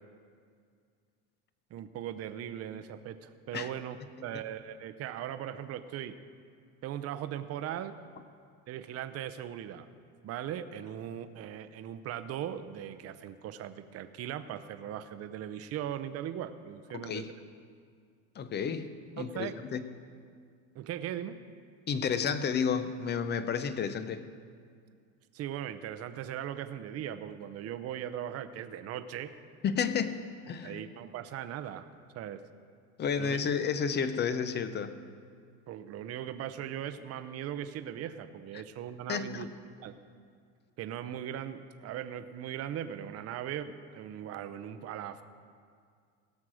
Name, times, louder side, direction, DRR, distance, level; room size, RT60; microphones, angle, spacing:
voice 1, 1.7-6.2 6.8-8.0 8.7-9.9 10.2-17.3 19.2-19.6 20.7-21.4 25.3-29.3 30.6-32.4 33.2-33.4 35.7-39.5 39.8-40.0 40.8-45.2, right 10 dB, 40° right, 10 dB, 0.7 m, -39 dB
voice 2, 16.9-17.3 18.4-19.9 21.9-24.3 29.6-30.8 33.0-35.0 39.1-39.5, left 6 dB, 30° left, 12 dB, 0.6 m, -31 dB
17.0 x 6.4 x 6.2 m, 2.1 s
cardioid pair, 130°, 37 cm